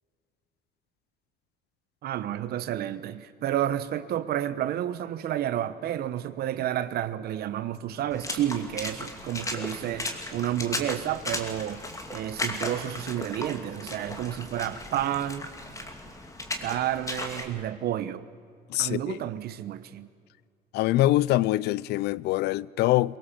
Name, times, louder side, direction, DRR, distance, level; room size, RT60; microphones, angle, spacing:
voice 1, 2.0-15.5 16.6-18.3 18.8-20.1, right 11 dB, 65° right, 1.1 m, -30 dB
Water / Splash splatter, 8.1-17.4, left 2 dB, 20° left, 2.6 m, -36 dB
voice 2, 18.7-19.2 20.7-23.2, left 16 dB, 80° left, 0.5 m, -24 dB
23.0 x 20.0 x 7.3 m
cardioid pair, 110°, 17 cm